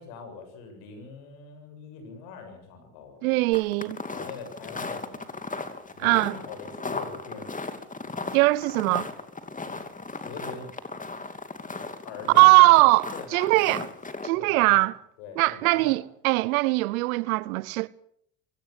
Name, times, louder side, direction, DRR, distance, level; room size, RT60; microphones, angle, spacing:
voice 1, 0.0-3.4 4.1-5.2 5.9-7.5 10.0-10.7 12.0-12.8 13.1-13.8 14.3-14.9 15.2-16.0, left 5 dB, 75° left, 7.3 m, -42 dB
voice 2, 3.2-4.0 6.0-6.4 8.3-9.1 12.3-13.8 14.2-14.9 15.4-17.9, right 22 dB, 80° right, 0.9 m, -20 dB
sound 1, 3.5-14.3, left 3 dB, 20° left, 2.7 m, -36 dB
22.5 x 18.0 x 7.3 m
hypercardioid pair, 70°, 42 cm